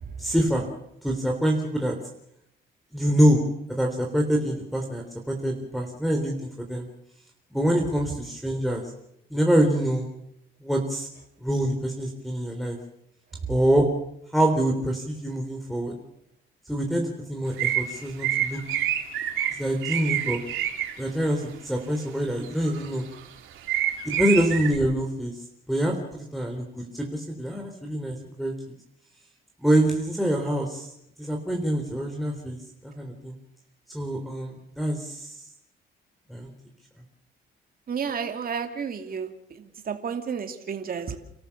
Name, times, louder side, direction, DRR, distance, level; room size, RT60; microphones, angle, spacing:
voice 1, 0.2-0.7 1.0-2.0 2.9-3.4 3.7-6.9 7.5-8.9 9.3-10.1 10.6-11.1 11.4-12.8 13.5-13.9 14.3-15.9 16.7-18.6 19.6-20.4 21.0-23.1 24.0-25.4 25.7-28.5 29.6-30.9 31.2-32.6 33.0-33.4 33.9-35.5 36.3-36.5, right 1 dB, ahead, 0 dB, 3.8 m, -25 dB
sound 1, 17.6-20.9 22.4-23.2 23.6-24.8, right 11 dB, 90° right, 3.2 m, -27 dB
voice 2, 37.9-41.2, right 6 dB, 50° right, 5 dB, 2.5 m, -32 dB
29.5 x 14.0 x 7.2 m, 0.79 s
cardioid pair, 90°, 20 cm